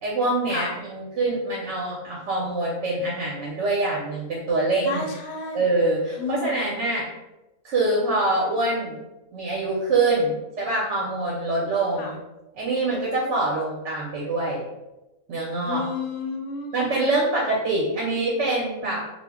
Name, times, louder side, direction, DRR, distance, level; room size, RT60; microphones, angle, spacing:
voice 1, 0.0-5.0 5.5-7.1 7.6-9.0 9.3-12.2 12.5-14.6 15.3-15.8 16.7-19.1, right 2 dB, 65° right, -3 dB, 0.8 m, -25 dB
voice 2, 4.8-5.7 6.2-6.8 12.0-12.1 15.6-17.1, left 4 dB, 65° left, 1 dB, 0.7 m, -31 dB
2.4 x 2.0 x 3.4 m, 0.98 s
omnidirectional pair, 1.4 m